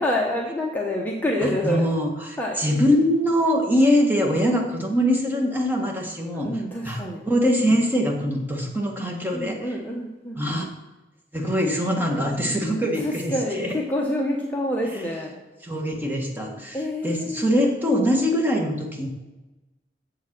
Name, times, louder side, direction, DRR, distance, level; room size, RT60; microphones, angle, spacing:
voice 1, 0.0-1.8 2.4-2.6 6.4-7.2 9.3-10.4 13.0-15.4 16.7-17.5, left 1 dB, 10° left, -2 dB, 0.9 m, -27 dB
voice 2, 1.4-9.8 10.4-10.6 11.3-13.8 14.9-15.1 15.6-19.1, equal, 10° right, 0 dB, 1.4 m, -23 dB
7.4 x 7.4 x 6.0 m, 1.1 s
head